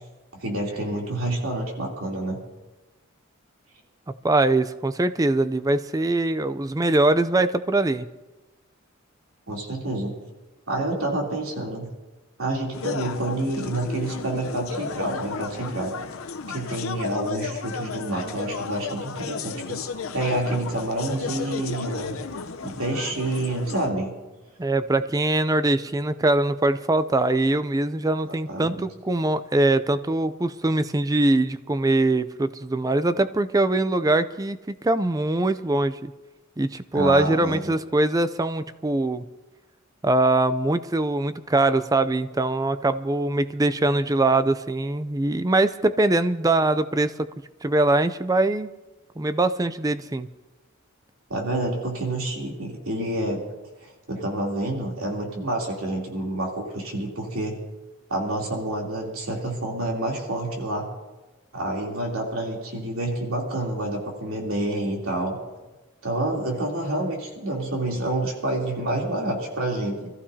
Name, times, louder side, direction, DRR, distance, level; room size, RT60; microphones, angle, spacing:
voice 1, 0.4-2.4 9.5-10.2 10.7-11.9 12.4-15.9 16.5-22.1 22.6-24.1 28.3-28.8 36.9-37.8 51.3-53.4 53.8-57.5 58.1-60.9 61.5-65.4 66.0-70.1, right 1 dB, 85° right, -1 dB, 3.3 m, -28 dB
voice 2, 4.2-8.1 24.6-36.1 36.6-39.2 40.0-47.1 47.6-48.7 49.2-50.3, right 2 dB, 15° right, 12 dB, 0.5 m, -22 dB
sound 1, 12.7-23.9, left 5 dB, 85° left, 0.8 m, -34 dB
25.0 x 14.5 x 2.8 m, 1.1 s
head